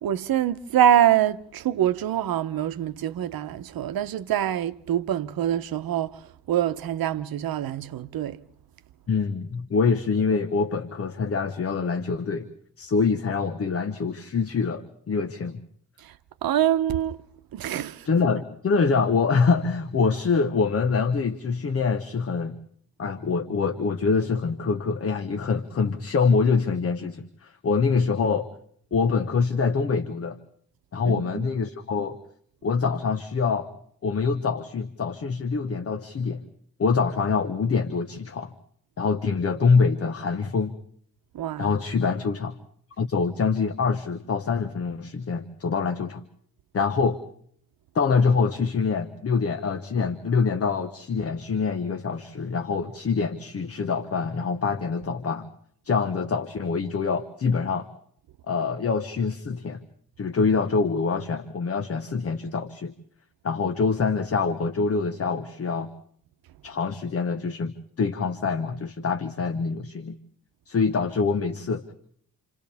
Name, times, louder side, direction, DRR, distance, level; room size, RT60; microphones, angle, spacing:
voice 1, 0.0-6.2 6.5-8.4 16.0-16.1 16.4-17.2 17.5-18.1 31.0-31.5 41.3-41.7, right 11 dB, 80° right, 0.9 m, -25 dB
voice 2, 9.1-12.5 12.8-15.6 18.0-22.6 23.0-28.5 28.9-30.4 30.9-32.2 32.6-33.7 34.0-36.4 36.8-38.5 39.0-40.8 41.6-42.6 43.0-46.2 46.7-47.2 47.9-55.5 55.8-57.9 58.5-59.8 60.2-62.9 63.4-65.9 66.6-70.1 70.7-71.9, left 5 dB, 40° left, 1.1 m, -25 dB
29.0 x 28.0 x 3.5 m
wide cardioid pair, 150°, 35 cm